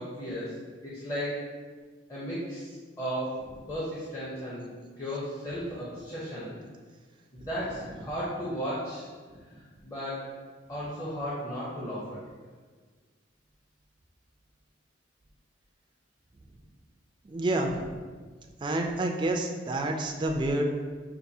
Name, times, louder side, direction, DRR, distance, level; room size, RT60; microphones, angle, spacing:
voice 1, 0.0-1.6 2.1-6.6 7.3-9.1 9.4-10.3 10.7-12.3, equal, 20° left, -8 dB, 0.6 m, -35 dB
voice 2, 17.3-17.9 18.6-20.6, right 1 dB, 25° right, 2 dB, 0.3 m, -29 dB
5.3 x 2.6 x 2.7 m, 1.5 s
head